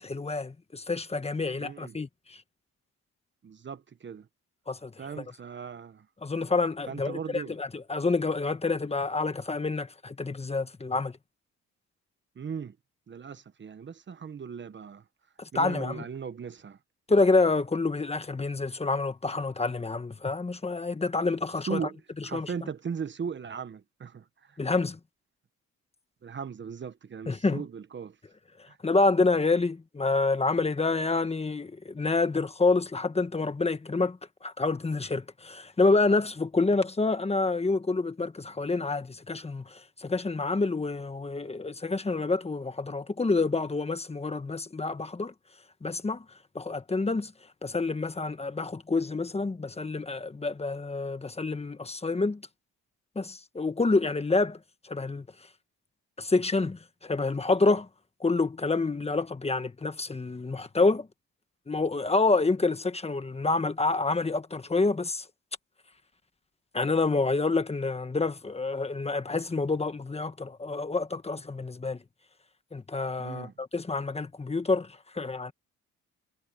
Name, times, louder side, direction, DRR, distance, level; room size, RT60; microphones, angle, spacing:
voice 1, 0.0-2.4 4.7-5.2 6.2-11.1 15.4-16.0 17.1-21.9 22.2-22.5 24.6-25.0 27.3-27.6 28.8-45.3 45.8-46.2 46.5-47.3 47.6-52.4 53.1-54.6 54.8-55.3 56.2-57.9 58.2-61.1 61.7-65.2 66.7-72.0 72.7-74.9 75.1-75.5, left 3 dB, 20° left, 1.4 m, -28 dB
voice 2, 1.6-1.9 3.4-4.3 5.0-6.1 6.9-7.5 12.4-12.7 13.1-15.0 15.5-16.8 21.7-22.0 22.2-24.2 26.2-28.1 28.7-28.8 73.2-73.5, right 6 dB, 40° right, 1.1 m, -38 dB
cardioid pair, 90°, 30 cm